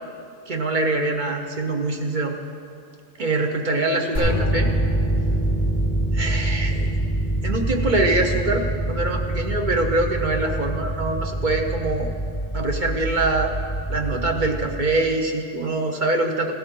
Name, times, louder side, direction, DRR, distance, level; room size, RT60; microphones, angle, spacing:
voice 1, 0.5-2.3 3.2-4.7 6.1-6.9 7.4-12.1 12.5-13.5 13.9-16.5, right 2 dB, 40° right, 3 dB, 1.1 m, -24 dB
sound 1, 4.1-15.1, right 1 dB, 65° right, 3.7 m, -25 dB
17.0 x 12.5 x 3.8 m, 2.3 s
omnidirectional pair, 1.4 m